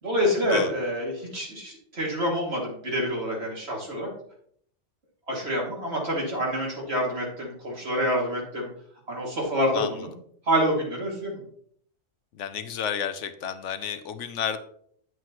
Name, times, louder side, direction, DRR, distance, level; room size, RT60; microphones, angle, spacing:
voice 1, 0.0-4.1 5.3-8.7 9.1-10.1 10.5-11.4, equal, 60° right, -2 dB, 2.6 m, -27 dB
voice 2, 12.3-14.6, left 8 dB, 80° left, 11 dB, 1.1 m, -31 dB
9.4 x 7.8 x 3.0 m, 0.64 s
omnidirectional pair, 1.2 m